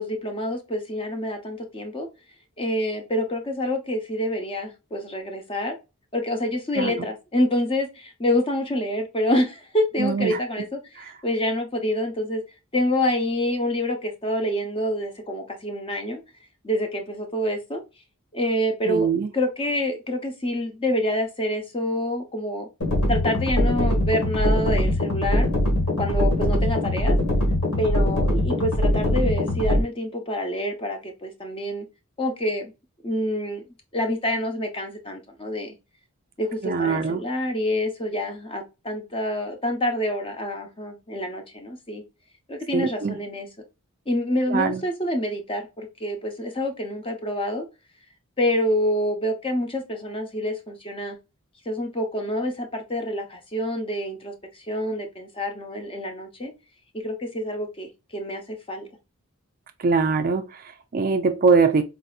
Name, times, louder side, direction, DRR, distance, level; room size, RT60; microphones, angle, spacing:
voice 1, 0.0-2.1 2.6-5.8 6.1-10.8 11.2-12.4 12.7-16.2 16.6-17.8 18.3-22.7 23.1-25.5 26.0-27.2 27.8-31.9 32.2-32.7 33.0-33.6 33.9-35.7 36.4-42.0 42.5-43.5 44.1-47.6 48.4-51.2 51.7-54.3 54.7-56.5 56.9-58.9, left 1 dB, 25° left, 0.7 m, -27 dB
voice 2, 6.8-7.1 10.0-10.7 11.0-11.1 18.8-19.3 36.6-37.2 42.7-43.2 44.5-44.8 59.8-61.8, right 4 dB, 40° right, 0.4 m, -23 dB
sound 1, 22.8-29.8, left 1 dB, 70° left, 1.6 m, -22 dB
4.1 x 2.7 x 2.3 m
head